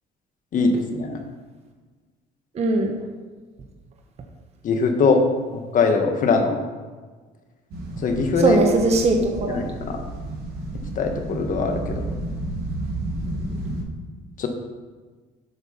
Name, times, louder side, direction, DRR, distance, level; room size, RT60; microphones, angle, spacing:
voice 1, 0.5-1.2 4.6-5.2 5.5-6.6 8.0-8.6 9.5-10.0 11.0-12.1 14.4-14.5, left 4 dB, 50° left, 4 dB, 1.4 m, -21 dB
voice 2, 2.5-2.9 8.4-9.6, right 3 dB, 40° right, 2 dB, 1.1 m, -20 dB
sound 1, 7.7-13.8, right 1 dB, 65° right, 2.7 m, -31 dB
8.0 x 6.1 x 5.6 m, 1.4 s
cardioid pair, 110°, 17 cm